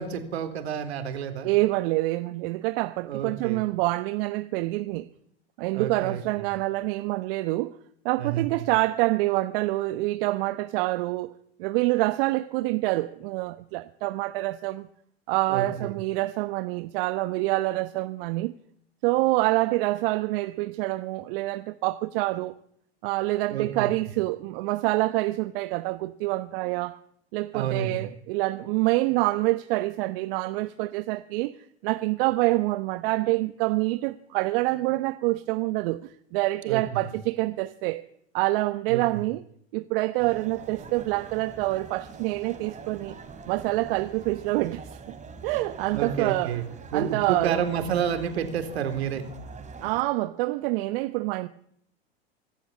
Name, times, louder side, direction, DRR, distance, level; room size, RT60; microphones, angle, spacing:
voice 1, 0.0-1.5 3.0-3.6 5.7-6.2 8.2-8.7 15.5-15.9 23.5-23.9 27.5-28.1 36.7-37.1 38.9-39.2 45.9-46.6 46.9-49.2, right 8 dB, 75° right, 3.8 m, -30 dB
voice 2, 1.4-5.1 5.6-7.7 8.0-11.3 11.6-14.9 15.3-18.5 19.0-22.5 23.0-27.0 27.3-31.6 31.8-38.0 38.3-39.4 39.7-43.2 43.5-45.2 45.4-46.6 46.9-47.6 49.8-51.5, right 20 dB, 60° right, 1.2 m, -26 dB
sound 1, 40.2-50.0, right 4 dB, 20° right, 3.6 m, -44 dB
25.0 x 13.0 x 8.6 m
hypercardioid pair, 95°, 32 cm